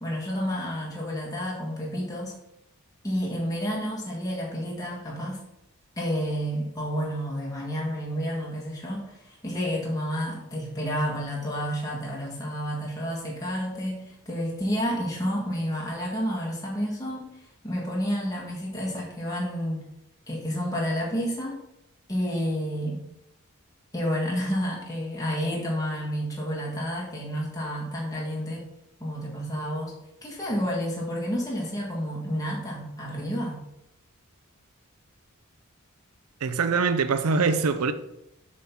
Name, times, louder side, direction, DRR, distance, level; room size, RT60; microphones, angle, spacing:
voice 1, 0.0-2.3 3.0-5.4 6.0-19.8 20.3-21.6 22.1-23.0 23.9-28.6 29.0-29.9 30.2-33.6, equal, 15° left, 1.5 m, -30 dB
voice 2, 36.4-37.9, right 4 dB, 90° right, 0.6 m, -23 dB
7.4 x 3.8 x 5.8 m
head